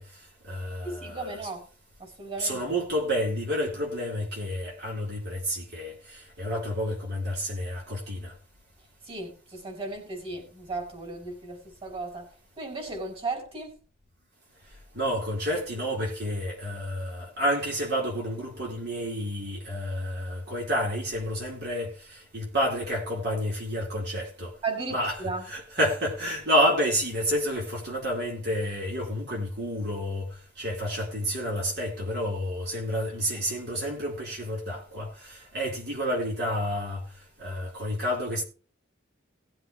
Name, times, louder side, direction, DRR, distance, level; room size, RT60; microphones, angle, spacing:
voice 1, 0.0-1.4 2.4-8.3 14.9-24.6 24.9-37.1 37.4-38.4, equal, 60° right, 4.4 m, -30 dB
voice 2, 0.8-1.6 2.0-2.6 9.0-12.3 12.6-13.8 24.6-25.4, right 3 dB, 30° right, 5.4 m, -35 dB
19.0 x 7.8 x 3.3 m
head